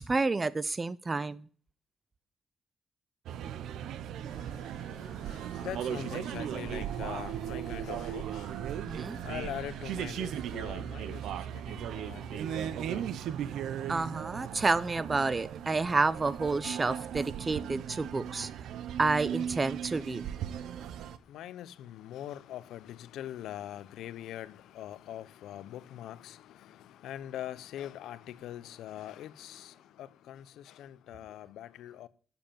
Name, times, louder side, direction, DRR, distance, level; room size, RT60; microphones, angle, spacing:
voice 1, 0.0-1.5 8.9-9.2 13.9-18.5 19.0-20.3, right 3 dB, 35° right, 0.8 m, -29 dB
sound 1, 3.3-21.2, right 9 dB, 85° right, 0.7 m, -37 dB
voice 2, 4.3-13.2 21.3-32.1, left 12 dB, 85° left, 0.6 m, -43 dB
9.1 x 7.2 x 8.7 m
supercardioid pair, 60°, 0 cm